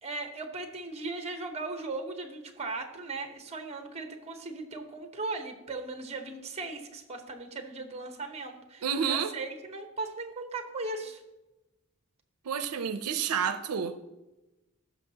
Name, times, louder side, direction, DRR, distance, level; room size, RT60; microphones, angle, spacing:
voice 1, 0.0-11.2, right 3 dB, 30° right, 1.0 m, -38 dB
voice 2, 8.8-9.3 12.5-14.0, right 7 dB, 85° right, 0.5 m, -29 dB
15.0 x 6.1 x 2.8 m
head